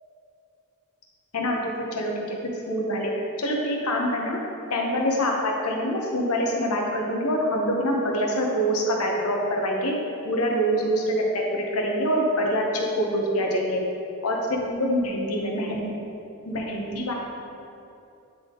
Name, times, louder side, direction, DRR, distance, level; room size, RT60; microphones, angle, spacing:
voice 1, 1.3-2.4 2.7-4.4 4.7-9.9 10.2-13.8 14.2-15.8 16.5-17.1, equal, 85° left, 0 dB, 1.0 m, -25 dB
9.5 x 3.6 x 3.8 m, 2.7 s
head